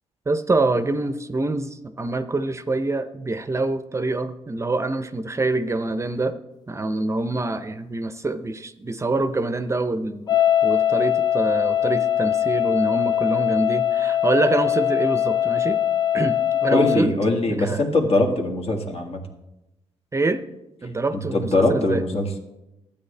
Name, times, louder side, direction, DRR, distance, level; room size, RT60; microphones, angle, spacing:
voice 1, 0.3-6.3 6.7-15.8 16.1-17.1 17.5-17.8 20.1-20.4 20.8-22.0, right 2 dB, 25° right, 11 dB, 0.6 m, -25 dB
sound 1, 10.3-17.0, left 10 dB, 35° left, 0.4 m, -21 dB
voice 2, 16.7-19.2 21.1-22.3, left 2 dB, 60° left, 2 dB, 1.8 m, -22 dB
12.5 x 8.5 x 3.3 m, 0.94 s
cardioid pair, 75°, 12 cm